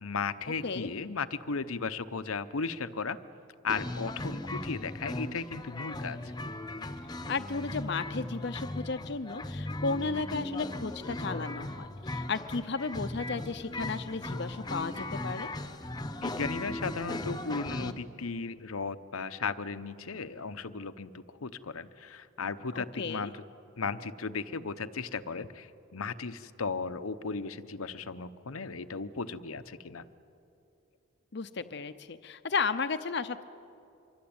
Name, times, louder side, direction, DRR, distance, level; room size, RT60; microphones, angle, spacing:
voice 1, 0.0-3.2 3.6-6.3 16.2-23.4 23.8-30.0, left 4 dB, 85° left, 11 dB, 0.9 m, -36 dB
sound 1, 3.7-17.9, left 1 dB, 20° left, 0.9 m, -37 dB
voice 2, 7.3-15.5 22.7-23.3 31.3-33.4, left 4 dB, 55° left, 10 dB, 0.7 m, -34 dB
25.5 x 23.5 x 8.8 m, 2.7 s
head